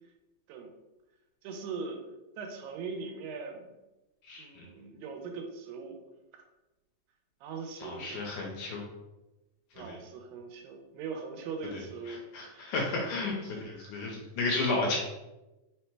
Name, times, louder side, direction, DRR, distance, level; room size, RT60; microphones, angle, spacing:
voice 1, 1.4-2.0 2.4-3.6 4.4-6.0 6.3-6.4 7.4-8.2 9.7-13.1 13.4-14.1, right 4 dB, 85° right, 3 dB, 2.4 m, -41 dB
voice 2, 4.2-4.7 7.8-8.8 9.9-10.0 11.7-11.8 12.1-15.0, left 3 dB, 75° left, -1 dB, 2.0 m, -33 dB
5.3 x 2.2 x 4.4 m, 1.0 s
omnidirectional pair, 4.0 m